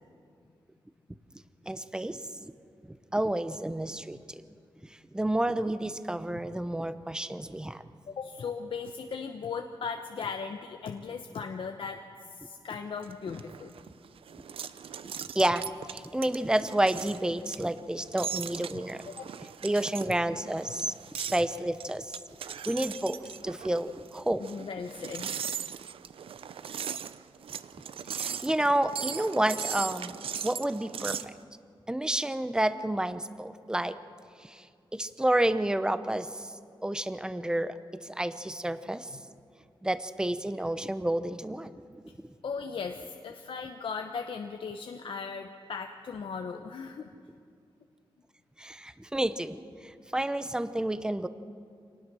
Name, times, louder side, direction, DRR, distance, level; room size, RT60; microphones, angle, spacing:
voice 1, 1.7-2.2 2.8-4.4 5.1-7.8 15.3-19.0 19.6-22.1 22.6-24.5 28.1-31.3 31.9-34.0 34.4-34.7 34.9-36.5 36.8-39.1 39.8-41.7 48.6-51.3, right 1 dB, 10° right, 12 dB, 0.8 m, -30 dB
voice 2, 8.1-13.7 19.1-19.2 24.4-25.5 42.4-47.1, left 5 dB, 70° left, 5 dB, 1.0 m, -37 dB
sound 1, 13.0-31.3, right 8 dB, 90° right, 0.6 m, -39 dB
26.0 x 19.0 x 6.2 m, 2.3 s
wide cardioid pair, 130°, 9 cm